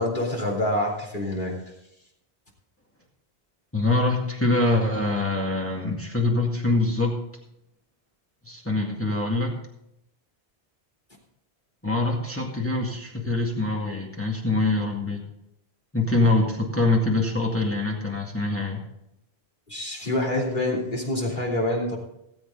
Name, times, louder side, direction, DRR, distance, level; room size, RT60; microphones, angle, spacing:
voice 1, 0.0-1.5 19.7-22.0, left 1 dB, 45° left, -2 dB, 3.3 m, -26 dB
voice 2, 3.7-7.1 8.4-9.5 11.8-15.2 15.9-18.8, left 2 dB, 10° left, -1 dB, 2.0 m, -24 dB
18.5 x 7.9 x 3.8 m, 0.82 s
omnidirectional pair, 1.1 m